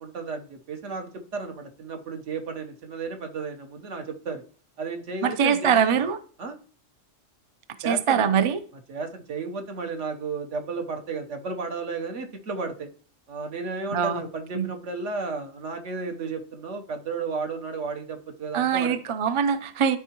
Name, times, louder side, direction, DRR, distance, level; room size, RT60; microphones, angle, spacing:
voice 1, 0.0-4.4 4.8-6.1 6.4-6.6 7.8-8.3 8.9-12.9 13.3-19.0, right 4 dB, 70° right, 5 dB, 1.4 m, -33 dB
voice 2, 5.2-6.2 7.8-8.6 13.9-14.2 14.5-14.7 18.5-20.0, right 7 dB, 50° right, 11 dB, 0.3 m, -23 dB
12.5 x 4.5 x 2.9 m, 0.43 s
omnidirectional pair, 1.3 m